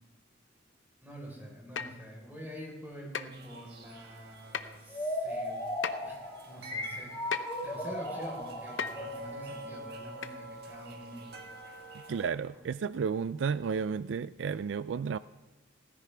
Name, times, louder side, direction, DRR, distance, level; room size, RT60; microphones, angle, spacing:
voice 1, 1.0-5.7 6.0-7.1 7.6-11.5 12.0-12.2 12.5-12.6, equal, 10° right, -2 dB, 4.2 m, -46 dB
sound 1, 1.8-2.0 3.1-3.3 4.5-4.8 5.8-5.9 7.3-7.6 8.8-9.0 10.2-10.3 10.9-11.0, left 6 dB, 80° left, 0.8 m, -35 dB
sound 2, 3.3-12.3, right 3 dB, 60° right, 1.4 m, -50 dB
sound 3, 4.9-11.6, left 1 dB, 20° left, 1.9 m, -38 dB
voice 2, 11.9-15.2, right 6 dB, 75° right, 15 dB, 0.4 m, -32 dB
16.5 x 15.0 x 3.4 m, 1.1 s
head